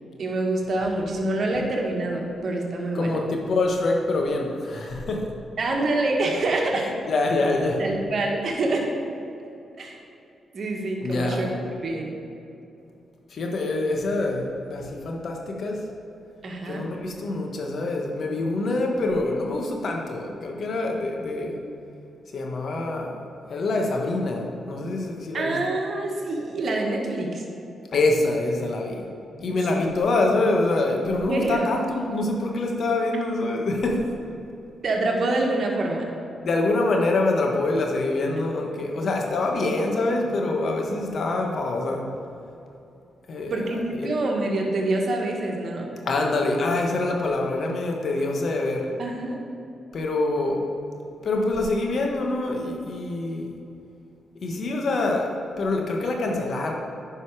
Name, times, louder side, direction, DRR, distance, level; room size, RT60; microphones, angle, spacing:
voice 1, 0.2-3.2 5.6-6.8 7.8-8.9 9.7-10.0 10.5-11.5 11.8-12.1 16.4-16.8 25.3-27.4 29.4-29.8 31.3-31.7 34.8-36.1 43.5-45.9 49.0-49.4, right 2 dB, 60° right, 0 dB, 1.6 m, -26 dB
voice 2, 2.9-5.3 6.8-7.8 11.0-11.5 13.3-15.9 16.6-21.6 22.3-23.2 23.5-25.6 27.9-29.1 29.4-34.1 36.4-42.1 43.3-43.6 44.0-44.2 46.0-49.0 49.9-50.7 51.2-53.5 54.3-56.7, left 2 dB, 65° left, 1 dB, 1.4 m, -25 dB
9.9 x 5.5 x 4.9 m, 2.7 s
supercardioid pair, 50°, 0 cm